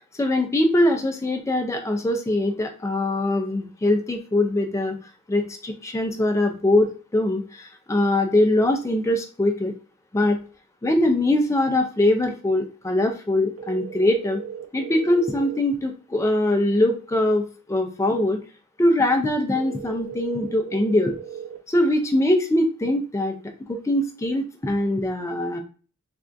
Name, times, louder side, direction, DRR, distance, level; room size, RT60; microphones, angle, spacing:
voice 1, 0.1-5.0 5.3-9.7 10.1-10.4 10.8-14.4 14.7-18.4 18.8-21.1 21.7-23.4 23.7-25.6, left 1 dB, 15° left, 4 dB, 0.3 m, -22 dB
sound 1, 13.6-15.6 19.6-21.6, right 8 dB, 80° right, 0.7 m, -36 dB
3.4 x 2.3 x 2.5 m, 0.38 s
head